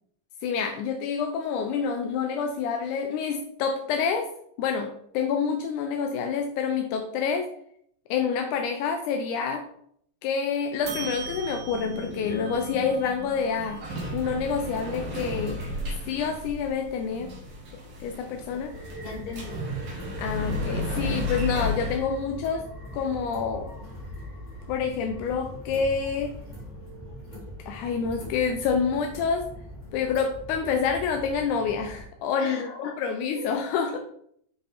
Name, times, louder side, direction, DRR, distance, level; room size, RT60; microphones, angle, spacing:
voice 1, 0.4-4.3 4.6-7.5 8.1-9.6 10.2-15.6 16.1-17.3 18.0-18.7 20.2-22.6 22.9-23.7 24.7-26.3 27.7-29.5 29.9-34.0, left 6 dB, 80° left, 4 dB, 1.8 m, -27 dB
sound 1, 10.8-22.0, left 1 dB, 50° right, 2.1 m, -34 dB
sound 2, 18.7-32.0, left 1 dB, 15° left, 1.7 m, -41 dB
voice 2, 19.0-19.7 32.4-33.0 33.3-33.5 33.9-34.0, left 3 dB, 60° left, -1 dB, 2.5 m, -38 dB
7.7 x 5.0 x 3.4 m, 0.67 s
omnidirectional pair, 4.1 m